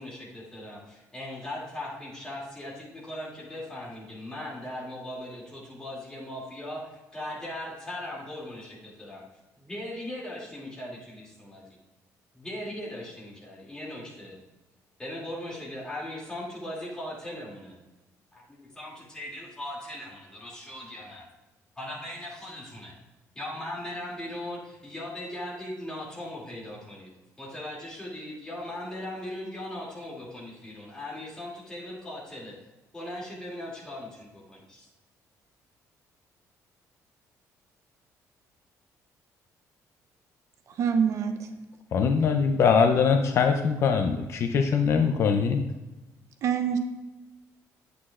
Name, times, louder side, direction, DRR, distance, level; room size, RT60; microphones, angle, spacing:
voice 1, 0.0-9.2 9.6-11.6 12.3-14.4 15.0-17.7 18.3-21.2 21.8-22.9 23.3-27.1 27.4-32.6 32.9-34.9, left 1 dB, 10° left, -4 dB, 2.4 m, -39 dB
voice 2, 40.7-41.5 46.4-46.8, right 7 dB, 55° right, 6 dB, 0.7 m, -25 dB
voice 3, 41.9-45.6, left 6 dB, 45° left, 5 dB, 0.5 m, -22 dB
9.7 x 8.2 x 2.4 m, 1.1 s
cardioid pair, 170°, 6 cm